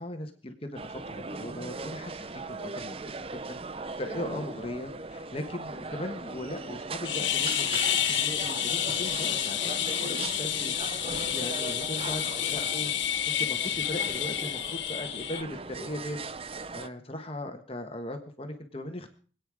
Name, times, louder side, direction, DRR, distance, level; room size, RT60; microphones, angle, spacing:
voice 1, 0.0-3.0 3.3-3.6 4.0-16.2 16.4-19.1, left 1 dB, 30° left, 6 dB, 1.4 m, -39 dB
sound 1, 0.8-16.9, right 3 dB, 30° right, 0.6 m, -39 dB
sound 2, 7.0-15.4, left 11 dB, 70° left, 1.2 m, -29 dB
24.0 x 9.2 x 4.9 m, 0.42 s
head